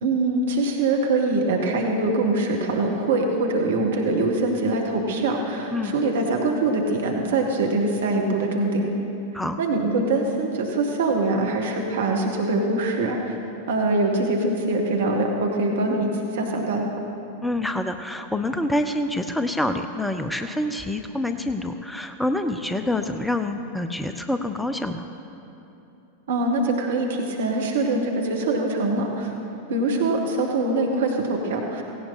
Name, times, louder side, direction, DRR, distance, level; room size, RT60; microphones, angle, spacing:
voice 1, 0.0-8.9 9.6-13.3 13.7-16.9 26.3-29.3 29.7-31.8, right 2 dB, 60° right, 1 dB, 1.6 m, -23 dB
voice 2, 17.4-25.1, left 1 dB, 5° left, 7 dB, 0.6 m, -26 dB
17.0 x 17.0 x 4.2 m, 3.0 s
figure-of-eight pair, 90°, 0 cm